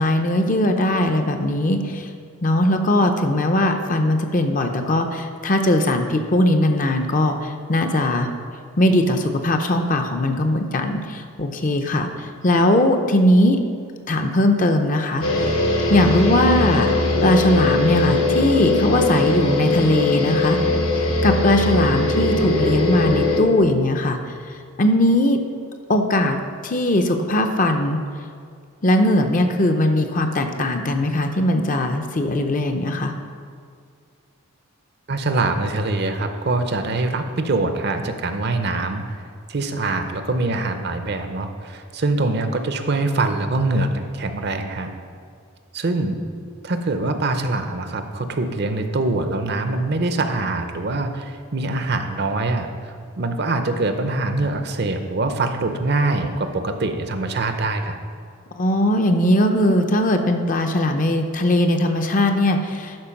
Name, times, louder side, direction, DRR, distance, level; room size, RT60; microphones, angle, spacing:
voice 1, 0.0-2.1 2.4-8.3 8.8-13.6 14.1-15.5 15.9-16.9 17.2-20.6 21.0-24.2 24.8-25.4 25.9-28.0 28.8-33.1 58.6-63.0, left 1 dB, 35° left, 6 dB, 0.6 m, -19 dB
sound 1, 15.2-23.4, left 2 dB, 80° left, 1.1 m, -20 dB
voice 2, 35.1-39.2 39.5-44.9 45.7-46.2 46.6-58.0, right 2 dB, 50° right, 7 dB, 0.6 m, -24 dB
12.0 x 4.6 x 5.8 m, 2.2 s
head